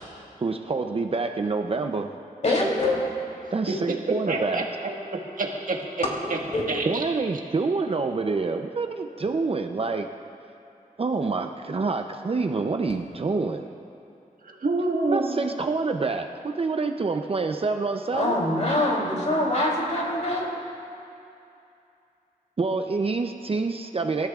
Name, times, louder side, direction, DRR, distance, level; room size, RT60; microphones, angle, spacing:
voice 1, 0.4-2.2 3.5-4.6 6.9-10.1 11.0-13.7 15.1-18.4 22.6-24.3, right 4 dB, 40° right, 5 dB, 0.6 m, -27 dB
voice 2, 2.4-2.9 6.5-6.6 18.1-20.5, left 1 dB, 50° left, -3 dB, 3.2 m, -24 dB
voice 3, 3.7-6.4 6.7-7.0 14.4-15.5, right 3 dB, 65° right, 0 dB, 1.6 m, -28 dB
27.0 x 14.0 x 2.4 m, 2.7 s
wide cardioid pair, 125°, 15 cm